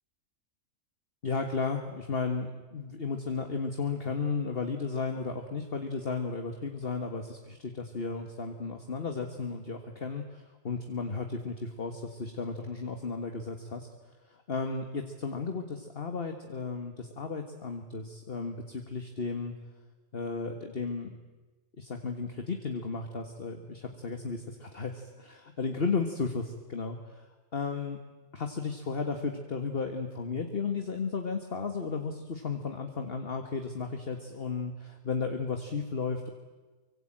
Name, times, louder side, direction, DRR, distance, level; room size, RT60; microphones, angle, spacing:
voice 1, 1.2-13.9 14.3-19.5 20.1-21.2 21.8-27.3 27.5-28.0 28.3-36.3, left 4 dB, 45° left, 5 dB, 1.9 m, -34 dB
24.5 x 24.0 x 8.9 m, 1.3 s
omnidirectional pair, 1.4 m